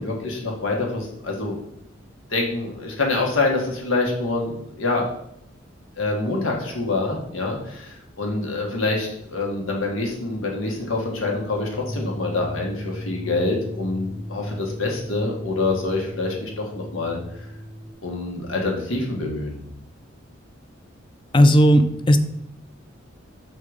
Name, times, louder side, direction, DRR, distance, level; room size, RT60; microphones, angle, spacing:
voice 1, 0.0-1.6 2.3-5.1 6.0-17.5 18.0-19.6, left 3 dB, 85° left, 0 dB, 1.4 m, -26 dB
sound 1, 11.7-17.9, equal, 5° left, 1.0 m, -35 dB
voice 2, 21.3-22.2, equal, 25° left, 9 dB, 0.5 m, -14 dB
6.6 x 3.7 x 4.8 m, 0.76 s
head